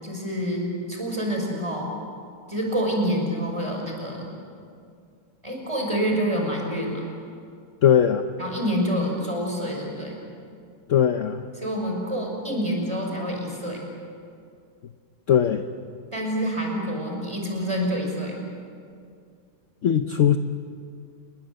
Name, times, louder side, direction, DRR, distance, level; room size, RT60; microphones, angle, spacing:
voice 1, 0.0-2.0 2.5-4.3 5.4-7.0 8.4-10.2 11.6-13.8 16.1-18.4, equal, 15° right, 0 dB, 5.8 m, -27 dB
voice 2, 7.8-8.2 10.9-11.4 15.3-15.6 19.8-20.4, left 9 dB, 55° left, 7 dB, 1.1 m, -19 dB
28.5 x 21.5 x 7.9 m, 2.3 s
omnidirectional pair, 1.8 m